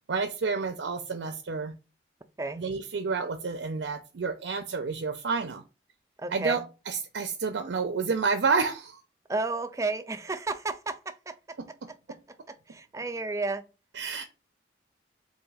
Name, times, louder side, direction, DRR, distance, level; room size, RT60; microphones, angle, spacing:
voice 1, 0.1-1.7 2.6-5.6 6.3-6.6 6.9-9.0 13.9-14.2, right 4 dB, 85° right, 0.5 m, -29 dB
voice 2, 6.2-6.6 9.3-11.3 12.5-13.6, right 3 dB, 15° right, 0.3 m, -32 dB
4.0 x 2.6 x 4.7 m
head